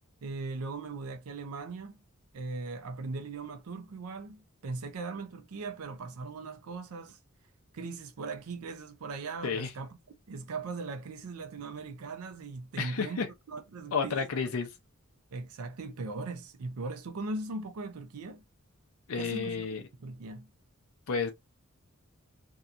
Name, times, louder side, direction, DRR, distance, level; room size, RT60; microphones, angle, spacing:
voice 1, 0.2-2.0 2.3-7.2 7.7-10.0 10.3-14.3 15.3-18.4 19.2-19.7 20.0-20.5, right 3 dB, 85° right, 0.5 m, -39 dB
voice 2, 12.8-13.3 13.9-14.7 19.1-19.8 21.1-21.3, left 5 dB, 70° left, 0.5 m, -31 dB
2.7 x 2.3 x 2.4 m
head